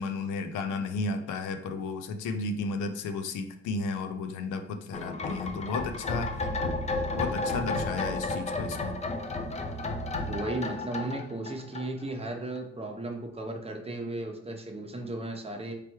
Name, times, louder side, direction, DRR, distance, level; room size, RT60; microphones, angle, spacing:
voice 1, 0.0-6.5 7.2-9.0, left 3 dB, 85° left, 7 dB, 0.5 m, -33 dB
sound 1, 4.9-12.3 12.6-12.7, left 2 dB, 20° left, 0.5 m, -32 dB
voice 2, 10.3-15.7, right 2 dB, 20° right, 3 dB, 0.7 m, -35 dB
3.3 x 3.1 x 4.3 m, 0.77 s
cardioid pair, 90°, 30 cm